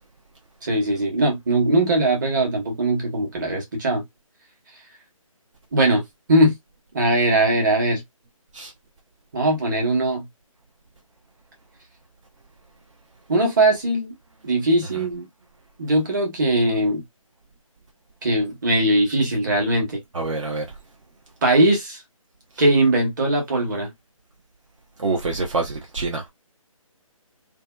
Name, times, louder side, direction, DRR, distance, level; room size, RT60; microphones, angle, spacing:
voice 1, 0.6-4.0 5.7-6.0 6.3-6.5 6.9-8.0 9.3-10.3 13.3-14.1 14.4-15.3 15.8-17.0 18.2-20.0 21.4-22.0 22.6-23.9, right 1 dB, 35° right, 1.1 m, -20 dB
voice 2, 20.1-20.7 25.0-26.2, right 3 dB, 60° right, 0.6 m, -26 dB
2.6 x 2.2 x 2.2 m
figure-of-eight pair, 155°, 18 cm